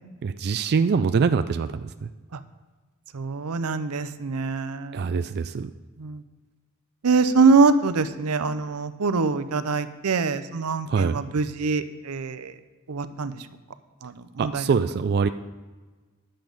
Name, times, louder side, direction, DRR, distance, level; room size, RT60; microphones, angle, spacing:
voice 1, 0.2-2.1 4.9-5.7 10.9-11.2 14.4-15.3, right 5 dB, 50° right, 9 dB, 0.3 m, -24 dB
voice 2, 3.1-5.1 6.0-6.2 7.0-12.5 12.9-13.4 14.0-14.7, right 4 dB, 90° right, 12 dB, 0.6 m, -24 dB
10.5 x 7.7 x 5.1 m, 1.3 s
head